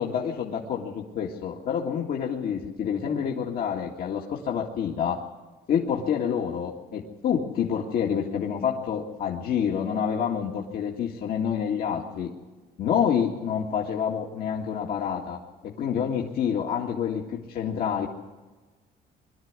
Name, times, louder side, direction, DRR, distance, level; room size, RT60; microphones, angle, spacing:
voice 1, 0.0-5.2 5.7-12.3 12.8-15.4 15.6-18.1, left 8 dB, 65° left, -2 dB, 2.2 m, -28 dB
23.0 x 12.5 x 9.7 m, 1.3 s
cardioid pair, 110°, 17 cm